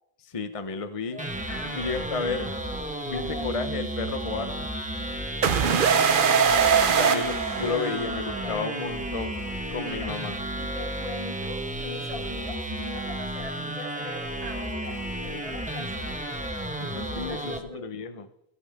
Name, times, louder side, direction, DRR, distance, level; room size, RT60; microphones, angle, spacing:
voice 1, 0.2-1.3 1.8-2.5 3.1-4.7 6.9-9.4 9.7-10.4 16.8-17.6 17.8-18.3, left 4 dB, 35° left, 9 dB, 0.9 m, -32 dB
voice 2, 1.1-2.3 3.1-3.6 5.6-7.3 7.6-7.8 8.4-9.0 9.8-10.1 10.5-16.2 17.0-17.9, left 1 dB, 35° right, -1 dB, 3.5 m, -41 dB
sound 1, 1.2-17.6, right 1 dB, 5° right, 1.4 m, -33 dB
sound 2, 5.4-8.2, right 7 dB, 60° right, 0.9 m, -22 dB
17.5 x 16.5 x 3.6 m, 0.78 s
omnidirectional pair, 1.0 m